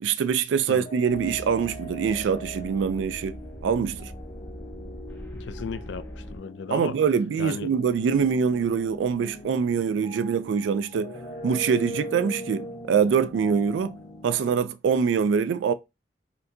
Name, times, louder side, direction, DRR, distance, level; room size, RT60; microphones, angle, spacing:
voice 1, 0.0-4.1 6.7-11.1 11.4-14.0 14.2-15.7, right 6 dB, 85° right, 0.3 m, -24 dB
sound 1, 0.8-14.6, equal, 45° left, 0.7 m, -42 dB
sound 2, 1.1-6.4, equal, 10° left, 1.2 m, -41 dB
voice 2, 5.3-7.0 7.4-7.7, left 5 dB, 75° left, 0.4 m, -35 dB
4.3 x 2.7 x 2.6 m
head